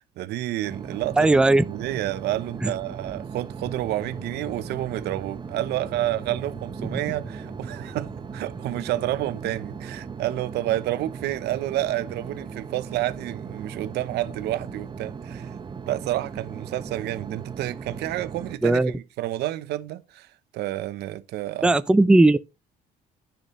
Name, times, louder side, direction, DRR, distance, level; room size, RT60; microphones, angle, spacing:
voice 1, 0.0-15.5 15.9-20.3 20.5-21.7, right 14 dB, 80° right, 0.8 m, -30 dB
sound 1, 0.6-18.6, right 6 dB, 25° right, 0.9 m, -38 dB
voice 2, 1.2-1.6 2.6-2.7 18.6-18.9 21.6-22.4, right 2 dB, 5° right, 0.4 m, -17 dB
sound 2, 3.6-9.8, left 1 dB, 15° left, 1.3 m, -46 dB
10.5 x 5.8 x 3.1 m
cardioid pair, 110°, 17 cm